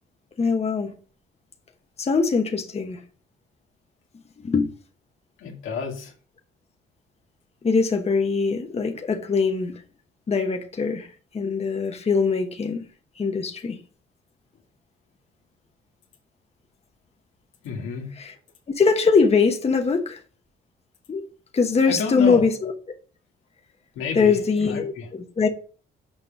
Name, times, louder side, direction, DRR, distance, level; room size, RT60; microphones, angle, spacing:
voice 1, 0.4-0.9 2.0-3.0 4.4-4.7 7.6-9.7 10.3-11.1 11.3-12.8 13.2-13.8 18.1-18.3 18.7-20.2 21.1-21.3 21.5-22.7 24.1-25.5, left 5 dB, 30° left, 1.1 m, -22 dB
voice 2, 5.4-6.1 17.6-18.1 21.9-22.4 24.0-24.4 24.7-25.1, left 6 dB, 90° left, 2.0 m, -30 dB
6.4 x 5.3 x 5.2 m
cardioid pair, 90°, 20 cm